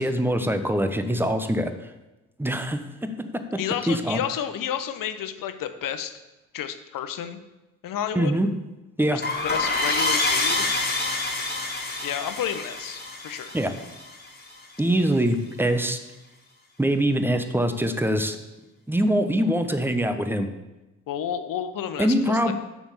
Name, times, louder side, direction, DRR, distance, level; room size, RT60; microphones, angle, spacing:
voice 1, 0.0-1.7 2.4-3.5 3.9-4.2 8.1-8.5 9.0-9.2 13.5-13.7 14.8-16.0 16.8-18.4 18.9-20.5 22.0-22.5, right 1 dB, 5° right, 8 dB, 1.1 m, -23 dB
voice 2, 3.6-6.2 6.5-7.4 7.8-8.3 9.1-10.7 12.0-13.6 21.1-22.5, left 9 dB, 60° left, 10 dB, 1.0 m, -31 dB
sound 1, 9.2-14.5, left 2 dB, 25° left, 2.2 m, -27 dB
7.0 x 6.3 x 7.3 m, 1.0 s
hypercardioid pair, 45°, 37 cm